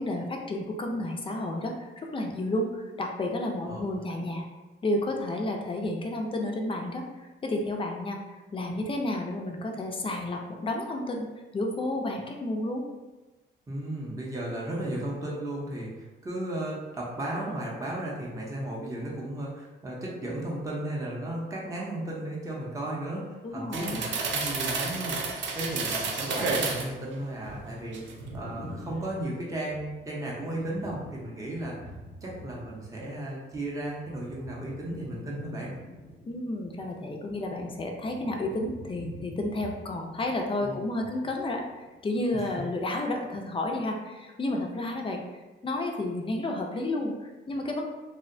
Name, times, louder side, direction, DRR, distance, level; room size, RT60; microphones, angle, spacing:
voice 1, 0.0-4.5 4.8-7.1 7.4-8.2 8.5-11.3 11.5-12.9 23.4-24.0 36.3-41.6 42.0-45.2 45.6-47.9, left 1 dB, 25° left, 2 dB, 0.4 m, -31 dB
voice 2, 13.7-25.2 25.6-31.7 32.2-35.7 40.6-41.1 42.3-42.5, right 1 dB, 15° right, -4 dB, 0.6 m, -35 dB
sound 1, 23.7-26.9 27.4-28.4 28.7-28.9, right 4 dB, 70° right, 0.4 m, -31 dB
sound 2, 27.9-33.1 33.4-42.0 42.3-43.0, left 1 dB, 85° left, 0.6 m, -47 dB
2.7 x 2.1 x 2.5 m, 1.2 s
cardioid pair, 90°, 20 cm